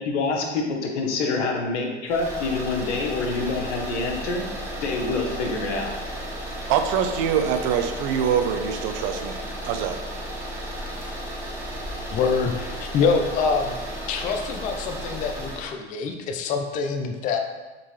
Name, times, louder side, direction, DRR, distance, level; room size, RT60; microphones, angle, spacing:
voice 1, 0.1-4.4 4.7-5.9, left 3 dB, 75° left, 1 dB, 0.9 m, -26 dB
sound 1, 2.1-15.7, equal, 5° right, 0.8 m, -34 dB
voice 2, 6.7-10.0, right 8 dB, 55° right, 7 dB, 0.5 m, -24 dB
voice 3, 12.1-13.8 14.1-17.4, left 5 dB, 25° left, 4 dB, 0.3 m, -25 dB
3.8 x 3.6 x 3.1 m, 1.2 s
hypercardioid pair, 105°, 35 cm